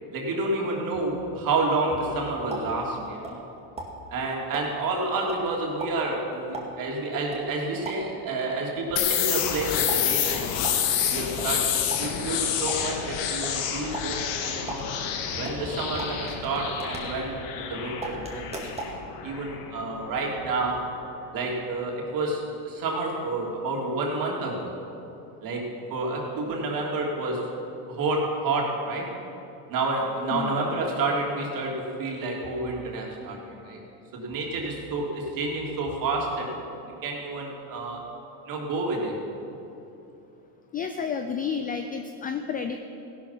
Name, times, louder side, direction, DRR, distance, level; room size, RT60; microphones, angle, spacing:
voice 1, 0.1-3.4 4.1-10.7 11.1-11.7 12.0-15.0 15.4-19.0 19.2-21.0 21.3-24.7 25.4-27.5 27.9-29.1 29.7-33.8 34.1-38.1 38.5-39.2, right 2 dB, 40° right, -1 dB, 3.2 m, -29 dB
sound 1, 2.3-3.5 3.8-8.3 9.9-17.7 18.0-19.0, right 2 dB, 15° right, 2.1 m, -39 dB
sound 2, 9.0-20.6, left 9 dB, 75° left, 1.8 m, -29 dB
voice 2, 40.7-42.8, left 6 dB, 20° left, 7 dB, 0.3 m, -31 dB
16.0 x 11.5 x 5.9 m, 2.9 s
supercardioid pair, 135°, 49 cm